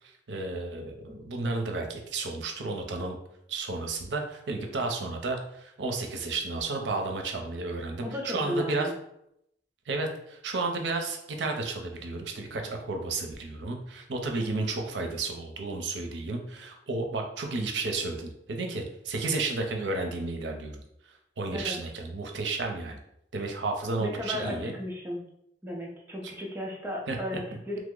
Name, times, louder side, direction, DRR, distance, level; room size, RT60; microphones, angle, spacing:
voice 1, 0.3-3.2 3.5-8.9 9.9-20.8 21.4-23.0 23.3-24.7 27.1-27.2, right 3 dB, 85° right, 3 dB, 0.5 m, -32 dB
voice 2, 8.0-8.9 21.5-21.8 24.0-25.2 25.6-27.8, left 1 dB, 15° right, -1 dB, 0.5 m, -35 dB
3.0 x 2.0 x 3.6 m, 0.77 s
head